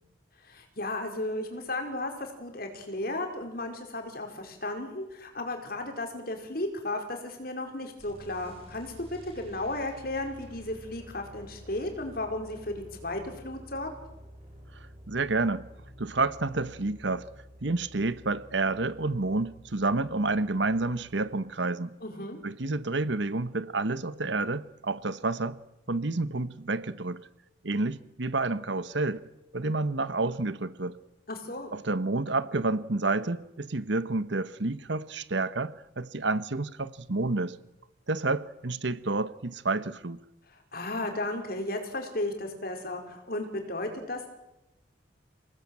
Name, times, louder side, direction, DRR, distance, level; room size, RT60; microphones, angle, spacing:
voice 1, 0.4-13.9 22.0-22.4 31.3-31.7 40.7-44.3, left 2 dB, 50° left, 4.8 m, -34 dB
sound 1, 8.0-21.3, equal, 30° right, 8.0 m, -50 dB
voice 2, 15.1-15.6 16.0-17.3 17.6-21.9 22.4-25.6 25.9-27.3 27.6-29.2 29.5-31.0 31.7-37.6 38.1-40.2, right 3 dB, 70° right, 1.2 m, -29 dB
27.5 x 19.0 x 8.9 m
head